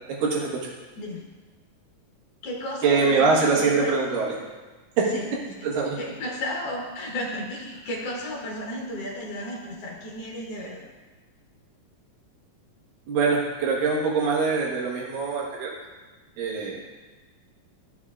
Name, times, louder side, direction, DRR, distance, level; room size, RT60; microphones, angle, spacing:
voice 1, 0.2-0.7 2.8-4.4 5.0-5.1 5.6-6.0 13.1-15.7 16.4-16.9, right 4 dB, 90° right, -3 dB, 3.0 m, -23 dB
voice 2, 2.4-3.9 5.1-5.3 5.6-5.7 5.9-10.9, left 1 dB, 65° left, -3 dB, 1.7 m, -33 dB
12.0 x 6.3 x 2.4 m, 1.3 s
omnidirectional pair, 3.8 m